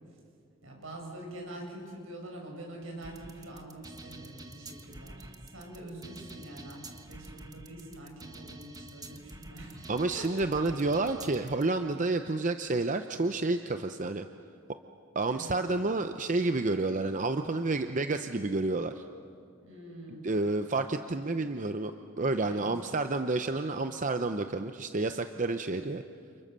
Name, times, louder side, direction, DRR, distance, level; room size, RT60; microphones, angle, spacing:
voice 1, 0.6-10.5 15.3-15.6 19.6-20.2 22.4-22.7 23.8-23.9, right 1 dB, 75° right, 0 dB, 7.1 m, -45 dB
sound 1, 3.0-11.6, right 2 dB, 20° right, 1.5 m, -48 dB
voice 2, 9.9-14.3 15.1-19.0 20.2-21.9 22.2-26.0, right 2 dB, 40° right, 8 dB, 0.7 m, -30 dB
29.5 x 28.5 x 6.9 m, 2.3 s
head